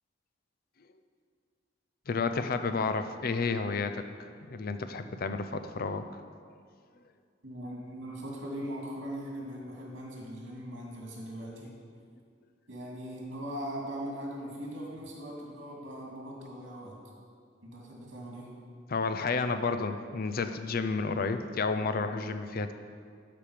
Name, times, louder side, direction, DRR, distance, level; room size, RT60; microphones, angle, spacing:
voice 1, 2.1-4.0 4.5-6.1 18.9-22.7, left 4 dB, 50° left, 9 dB, 0.5 m, -31 dB
voice 2, 7.4-11.7 12.7-17.0 17.6-18.5, equal, 75° right, -2 dB, 2.3 m, -40 dB
12.5 x 5.1 x 5.0 m, 2.2 s
head